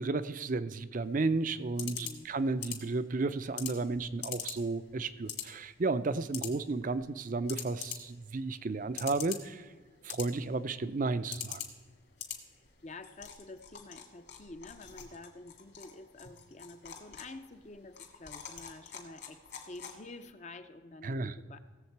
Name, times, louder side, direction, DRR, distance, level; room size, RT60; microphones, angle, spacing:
voice 1, 0.0-9.7 10.0-11.6 21.0-21.3, right 3 dB, 40° right, 14 dB, 0.4 m, -33 dB
sound 1, 0.9-20.3, left 9 dB, 55° left, 1.9 m, -46 dB
voice 2, 1.8-2.3 12.8-21.6, left 2 dB, 35° left, 9 dB, 0.6 m, -49 dB
17.5 x 7.4 x 4.6 m, 1.5 s
head